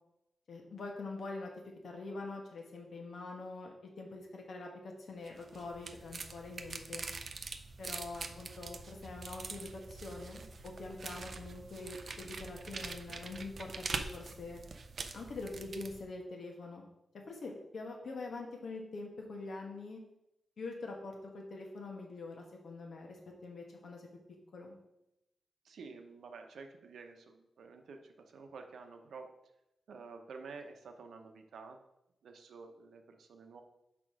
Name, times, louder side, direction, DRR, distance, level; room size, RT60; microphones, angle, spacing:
voice 1, 0.5-1.5 1.8-7.1 7.8-14.6 15.1-16.8 17.3-20.0 20.6-24.1 24.5-24.8, left 3 dB, 55° left, 1 dB, 1.3 m, -44 dB
sound 1, 5.3-16.0, right 4 dB, 45° right, 0.5 m, -44 dB
voice 2, 25.6-29.3 29.9-31.8 32.2-33.6, right 4 dB, 90° right, 5 dB, 0.8 m, -50 dB
6.0 x 5.0 x 4.8 m, 0.87 s
wide cardioid pair, 180°, 0 cm